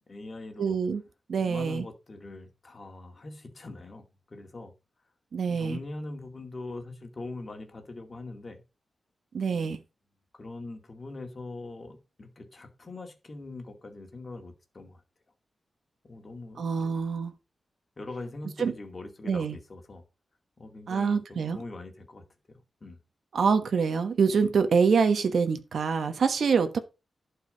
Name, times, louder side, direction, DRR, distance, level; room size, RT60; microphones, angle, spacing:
voice 1, 0.1-0.8 1.4-4.7 5.4-8.6 9.5-9.8 10.3-15.0 16.0-16.9 18.0-20.0 20.6-23.0, left 2 dB, 30° left, 2.2 m, -42 dB
voice 2, 0.6-1.0 1.3-1.8 5.3-5.8 9.3-9.8 16.6-17.3 18.6-18.7 19.3-19.5 20.9-21.6 23.3-26.8, right 5 dB, 65° right, 1.2 m, -25 dB
11.5 x 4.8 x 5.1 m
wide cardioid pair, 175°, 0 cm